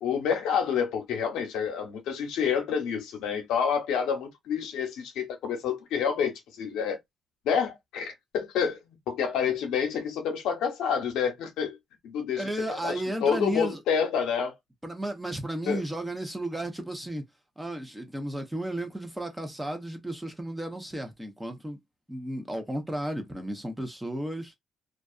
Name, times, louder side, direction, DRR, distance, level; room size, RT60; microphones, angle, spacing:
voice 1, 0.0-7.0 7.4-11.8 12.0-12.9 13.2-14.6 15.7-15.8, left 7 dB, 90° left, 0.8 m, -28 dB
voice 2, 12.4-13.8 14.8-17.3 17.6-21.8 22.1-24.5, right 1 dB, 10° right, 0.8 m, -33 dB
2.4 x 2.3 x 2.4 m
cardioid pair, 90°, 0 cm